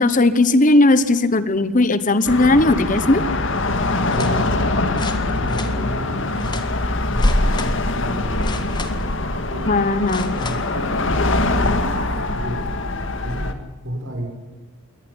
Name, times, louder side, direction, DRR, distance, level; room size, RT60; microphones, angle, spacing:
voice 1, 0.0-3.2 9.7-10.3, left 2 dB, 35° left, 13 dB, 1.1 m, -17 dB
sound 1, 2.2-13.5, left 2 dB, 60° left, 1.9 m, -22 dB
voice 2, 3.8-6.6 7.1-8.7 9.5-9.8 10.3-12.8 13.2-14.3, equal, 60° right, 4 dB, 6.1 m, -33 dB
sound 2, 4.0-4.3 4.9-5.7 6.4-6.7 7.2-7.7 8.4-9.1 10.0-10.6 11.1-11.2, left 4 dB, 20° left, 1.7 m, -34 dB
22.5 x 18.5 x 9.7 m, 1.1 s
head